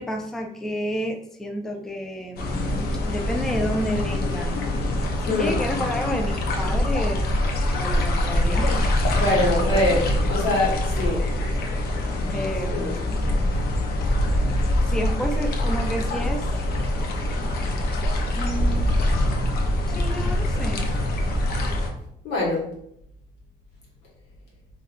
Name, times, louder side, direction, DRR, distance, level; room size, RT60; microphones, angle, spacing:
voice 1, 0.0-4.5 5.2-7.3 7.7-9.2 12.3-13.2 14.9-16.5 18.3-18.9 19.9-20.9, equal, 5° left, 3 dB, 0.3 m, -30 dB
sound 1, 2.4-21.9, left 1 dB, 65° left, 0.6 m, -24 dB
voice 2, 5.3-5.6 9.1-11.3 12.7-12.9 22.2-22.6, left 2 dB, 90° left, -4 dB, 1.2 m, -23 dB
3.4 x 2.5 x 2.4 m, 0.75 s
cardioid pair, 110°, 17 cm